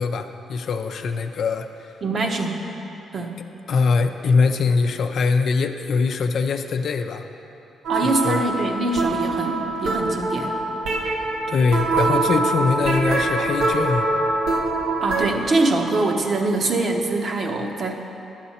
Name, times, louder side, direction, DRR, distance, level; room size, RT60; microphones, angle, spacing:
voice 1, 0.0-1.7 3.7-7.2 8.2-8.4 11.5-14.1, left 4 dB, 65° left, 6 dB, 0.5 m, -22 dB
voice 2, 2.0-2.6 3.1-3.4 7.9-10.6 15.0-17.9, right 2 dB, 50° right, 2 dB, 0.9 m, -23 dB
sound 1, 7.8-15.3, right 2 dB, 85° right, 0.8 m, -23 dB
10.5 x 7.4 x 4.2 m, 2.9 s
cardioid pair, 85°, 0 cm